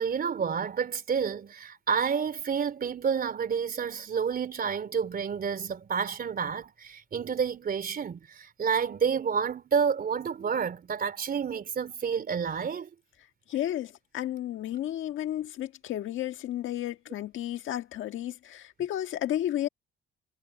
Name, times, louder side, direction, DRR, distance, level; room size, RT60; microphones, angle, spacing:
voice 1, 0.0-12.9, right 6 dB, 50° right, 3.6 m, -29 dB
voice 2, 13.5-19.7, left 12 dB, 80° left, 1.6 m, -32 dB
cardioid pair, 90°, 20 cm